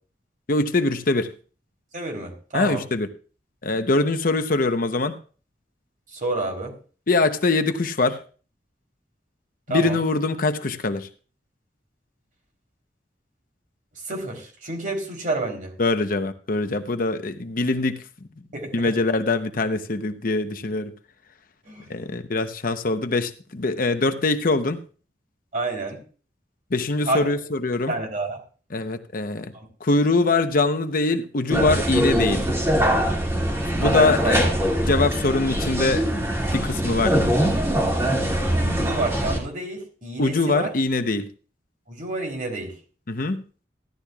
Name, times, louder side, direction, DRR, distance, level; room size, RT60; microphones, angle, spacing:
voice 1, 0.5-1.3 2.5-3.1 3.6-5.2 7.1-8.2 9.7-11.1 15.8-18.0 18.7-20.9 21.9-24.8 26.7-27.9 28.7-29.5 29.8-32.4 33.8-34.5 34.8-37.2 40.2-41.3 43.1-43.4, left 3 dB, 55° left, 8 dB, 0.9 m, -23 dB
voice 2, 1.9-2.9 6.1-6.7 9.7-10.0 14.1-15.7 18.5-18.9 21.6-22.1 25.5-26.0 27.0-27.3 27.9-28.4 29.5-29.7 33.9-34.3 38.5-40.7 41.9-42.7, right 2 dB, 50° right, 2 dB, 3.6 m, -29 dB
sound 1, 31.5-39.4, equal, 15° right, 2.2 m, -22 dB
16.0 x 12.0 x 2.4 m, 0.38 s
head